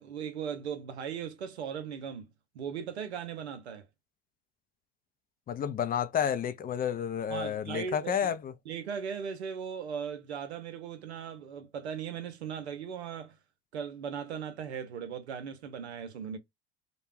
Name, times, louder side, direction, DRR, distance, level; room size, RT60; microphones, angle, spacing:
voice 1, 0.0-2.3 2.5-3.9 7.3-8.1 8.7-13.4 13.7-16.4, right 7 dB, 85° right, 0.6 m, -38 dB
voice 2, 5.5-8.5, left 8 dB, 30° left, 0.4 m, -30 dB
2.3 x 2.2 x 3.1 m
hypercardioid pair, 65°, 32 cm